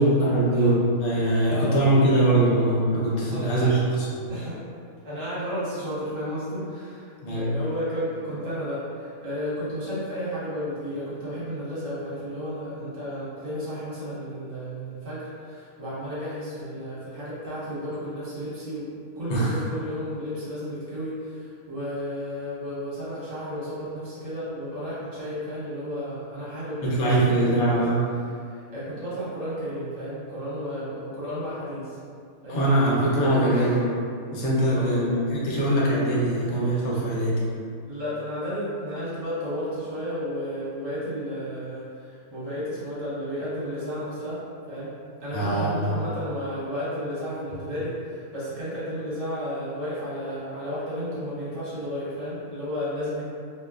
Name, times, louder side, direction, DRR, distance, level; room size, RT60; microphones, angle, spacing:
voice 1, 0.0-4.3 7.2-7.5 19.3-19.5 26.8-28.1 32.5-33.9 34.3-37.4 45.3-46.0, right 1 dB, 70° left, -6 dB, 1.0 m, -22 dB
voice 2, 1.5-1.9 3.1-3.7 4.3-4.6 5.0-27.8 28.5-32.0 32.4-32.7 33.5-33.8 34.6-35.0 37.8-44.4 44.7-44.9 45.2-53.2, equal, 65° right, -10 dB, 1.2 m, -33 dB
2.6 x 2.2 x 2.2 m, 2.3 s
omnidirectional pair, 1.5 m